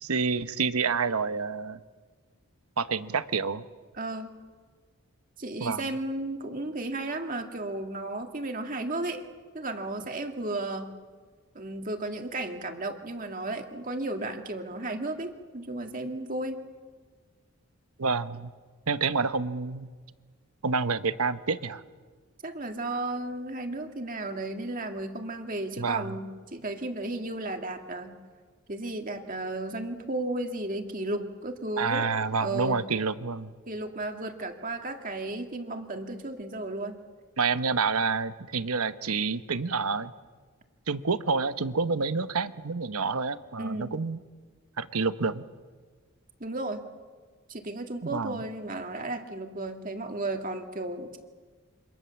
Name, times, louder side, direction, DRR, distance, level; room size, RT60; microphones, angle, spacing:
voice 1, 0.0-1.8 2.8-3.6 5.6-5.8 18.0-18.5 18.9-19.9 20.6-21.8 25.8-26.2 31.8-33.5 37.4-40.1 40.9-44.2 44.8-45.4 48.0-48.4, right 4 dB, 90° right, 12 dB, 1.1 m, -28 dB
voice 2, 3.9-4.3 5.4-9.2 9.5-10.9 11.5-16.6 22.4-28.2 28.7-32.1 32.4-32.8 33.7-36.9 43.6-43.9 46.4-46.8 47.5-51.2, right 2 dB, 40° right, 4 dB, 2.2 m, -34 dB
28.0 x 25.5 x 7.2 m, 1.5 s
head